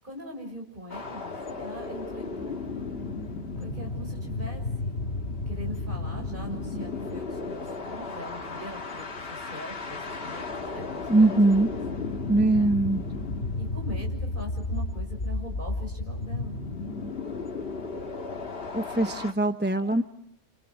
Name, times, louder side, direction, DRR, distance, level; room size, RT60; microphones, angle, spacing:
voice 1, 0.0-2.9 3.6-5.0 5.5-11.3 12.5-12.7 13.6-16.6, equal, 45° right, 1 dB, 6.6 m, -42 dB
sound 1, 0.9-19.3, left 3 dB, 55° left, 1.9 m, -33 dB
voice 2, 11.1-11.7 12.3-13.0 18.7-20.0, right 2 dB, 10° right, 6 dB, 1.0 m, -21 dB
29.5 x 28.0 x 6.3 m, 0.73 s
omnidirectional pair, 1.2 m